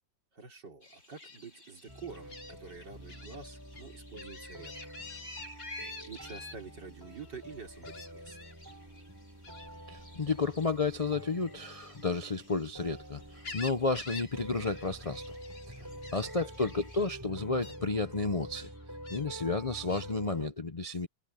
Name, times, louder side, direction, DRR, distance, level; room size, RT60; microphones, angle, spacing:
voice 1, 0.3-4.7 6.0-8.4 15.8-16.3, right 5 dB, 65° right, 4.4 m, -48 dB
sound 1, 0.8-17.1, left 1 dB, 25° left, 5.1 m, -55 dB
Gull seagull, 1.2-1.4 2.3-2.5 3.1-3.4 3.7-6.6 7.8-8.5 9.4-9.7 11.6-12.8 13.2-14.3 14.6-14.9 15.2-15.7 16.0-16.3 17.0-17.2 17.6-17.8 18.5-19.2 19.9-20.1, left 3 dB, 90° left, 4.2 m, -46 dB
sound 2, 1.9-20.5, equal, 10° right, 4.2 m, -47 dB
voice 2, 9.9-15.2 16.1-18.7 19.1-21.1, left 3 dB, 75° left, 0.3 m, -32 dB
omnidirectional pair, 2.0 m